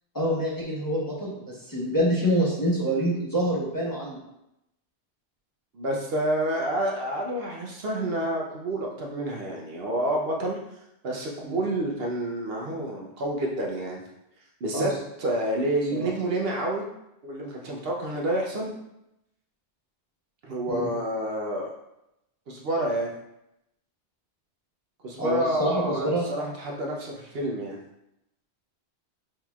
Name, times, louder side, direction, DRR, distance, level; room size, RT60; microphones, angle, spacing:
voice 1, 0.1-4.2 11.4-11.6 14.7-14.9 15.9-16.1 20.7-20.9 25.2-26.2, equal, 20° left, -6 dB, 1.0 m, -26 dB
voice 2, 5.7-10.6 11.0-14.0 14.6-14.9 15.2-16.9 17.2-18.7 20.4-21.7 22.5-23.1 25.0-27.8, right 1 dB, 65° right, -1 dB, 0.9 m, -29 dB
6.1 x 3.0 x 2.3 m, 0.86 s
omnidirectional pair, 1.1 m